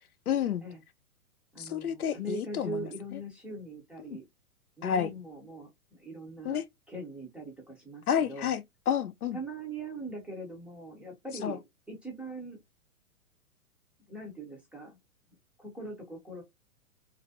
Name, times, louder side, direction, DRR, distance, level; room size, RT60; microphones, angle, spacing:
voice 1, 0.3-0.6 1.6-3.2 4.8-5.1 6.4-6.6 8.1-9.4 11.4-11.6, left 8 dB, 85° left, 0.6 m, -30 dB
voice 2, 1.5-4.2 4.8-6.6 6.9-8.5 9.3-11.6 11.9-12.6 14.1-15.0 15.6-16.4, right 1 dB, 5° right, 0.5 m, -41 dB
3.2 x 2.5 x 2.6 m
figure-of-eight pair, 115°, 43 cm